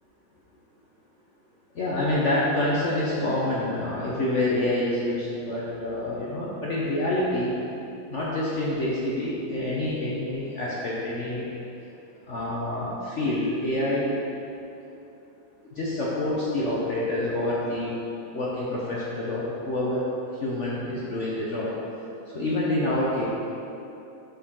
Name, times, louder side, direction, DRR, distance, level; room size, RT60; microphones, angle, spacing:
voice 1, 1.7-7.5 8.1-11.5 12.3-14.1 15.8-17.9 18.3-20.0 20.4-21.7 22.3-23.2, left 1 dB, 50° left, -7 dB, 1.1 m, -27 dB
10.5 x 4.4 x 3.7 m, 2.8 s
omnidirectional pair, 2.0 m